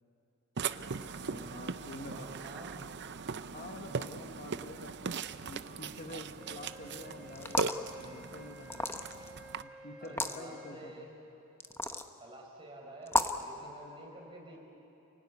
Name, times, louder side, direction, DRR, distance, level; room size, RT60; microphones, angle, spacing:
Burping eructation, 0.6-9.6, right 5 dB, 55° right, 0.6 m, -39 dB
voice 1, 1.2-2.5 3.5-8.7 9.6-11.1, left 2 dB, 40° left, 4 dB, 1.3 m, -48 dB
voice 2, 2.0-2.8 10.0-11.1 12.2-14.6, right 1 dB, 25° right, -1 dB, 4.9 m, -49 dB
Wind instrument woodwind instrument, 6.4-10.8, equal, 5° right, 2.9 m, -53 dB
sound 1, 7.4-7.8 8.7-9.3 10.0-10.4 11.6-12.1 13.1-13.4, left 2 dB, 10° left, 0.9 m, -32 dB
28.0 x 18.0 x 9.6 m, 2.9 s
head